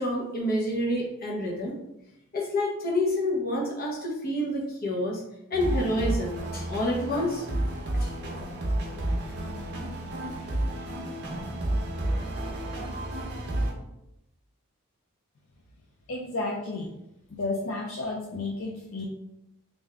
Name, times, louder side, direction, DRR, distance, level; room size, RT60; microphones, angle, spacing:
voice 1, 0.0-1.7 2.3-5.2 5.5-7.5 8.0-8.1, left 1 dB, 40° left, -3 dB, 0.9 m, -28 dB
sound 1, 5.5-13.7, right 1 dB, 50° right, 0.7 m, -31 dB
voice 2, 16.1-16.9 17.4-19.1, left 2 dB, 65° left, -1 dB, 0.5 m, -32 dB
3.3 x 2.6 x 3.4 m, 0.85 s
head